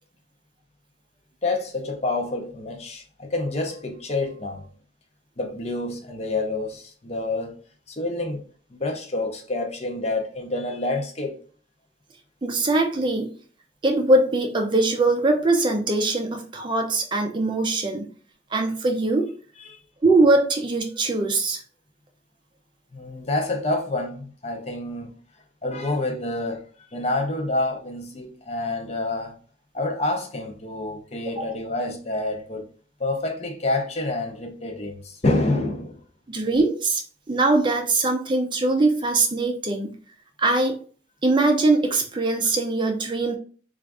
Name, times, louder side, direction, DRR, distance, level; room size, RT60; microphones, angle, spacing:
voice 1, 1.4-4.7 5.4-7.6 7.9-8.4 8.7-11.4 19.6-19.8 22.9-25.1 25.6-29.4 29.7-32.7 33.0-36.0, left 2 dB, 35° left, 0.6 m, -28 dB
voice 2, 12.4-13.3 13.8-18.1 18.5-19.3 20.0-21.6 31.4-31.5 36.3-37.0 37.3-39.9 40.4-40.8 41.2-43.3, right 2 dB, 25° right, 0.4 m, -22 dB
3.6 x 2.4 x 3.5 m
head